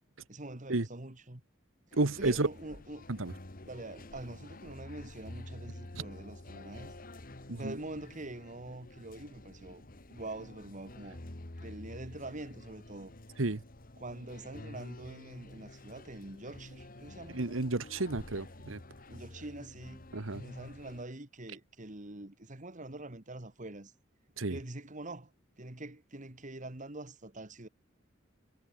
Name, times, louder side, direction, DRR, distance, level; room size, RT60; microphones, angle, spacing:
voice 1, 0.3-1.4 2.1-3.1 3.6-6.9 7.6-11.2 11.6-13.1 14.0-17.4 19.1-20.1 20.4-23.9 24.5-25.3 25.6-27.7, right 2 dB, 40° right, 2.2 m, -45 dB
sound 1, 1.9-21.0, left 1 dB, 45° left, 1.9 m, -49 dB
voice 2, 2.0-2.5 3.2-3.3 5.9-6.0 7.5-7.7 13.4-13.6 17.3-18.8 20.1-20.4 24.4-24.6, right 2 dB, 90° right, 1.4 m, -31 dB
head